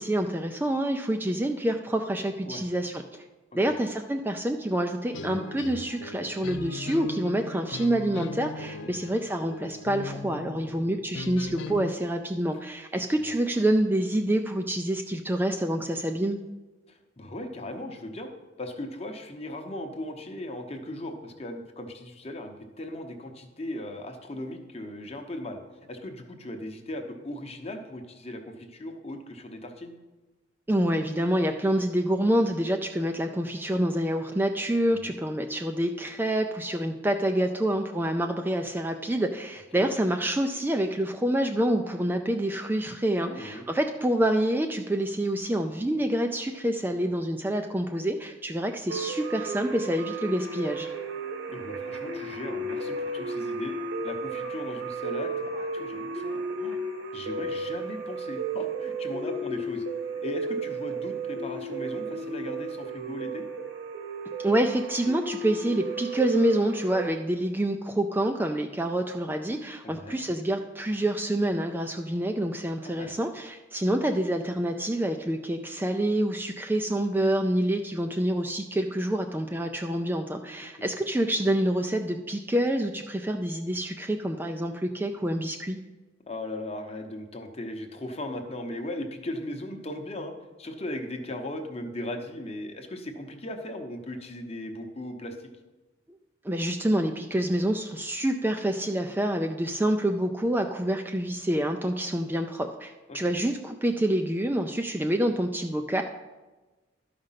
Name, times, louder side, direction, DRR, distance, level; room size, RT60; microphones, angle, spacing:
voice 1, 0.0-3.2 3.5-16.4 30.7-50.9 64.4-85.8 96.4-106.0, right 1 dB, 10° right, 4 dB, 0.4 m, -27 dB
sound 1, 5.1-11.9, left 3 dB, 65° left, 0.5 m, -39 dB
voice 2, 16.9-18.3 18.6-25.6 25.9-29.9 35.0-35.2 39.7-39.9 43.2-43.7 51.5-53.7 54.0-56.8 57.1-59.8 60.2-63.4 69.8-70.2 72.8-73.2 80.6-80.7 86.3-90.3 90.6-95.5 103.1-103.2, left 1 dB, 30° left, 5 dB, 0.9 m, -38 dB
sound 2, 48.9-67.1, right 2 dB, 75° right, 1.6 m, -34 dB
12.5 x 5.1 x 5.7 m, 1.2 s
head